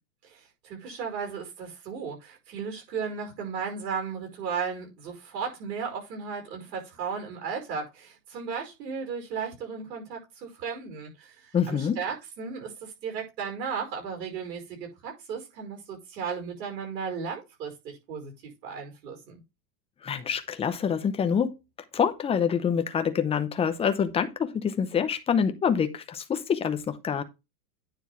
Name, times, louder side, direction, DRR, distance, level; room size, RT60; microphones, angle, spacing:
voice 1, 0.2-19.4, right 6 dB, 75° right, 5.3 m, -35 dB
voice 2, 11.5-12.0 20.0-21.5 21.9-27.2, left 7 dB, 10° left, 0.6 m, -26 dB
9.6 x 3.5 x 5.6 m
supercardioid pair, 135°, 49 cm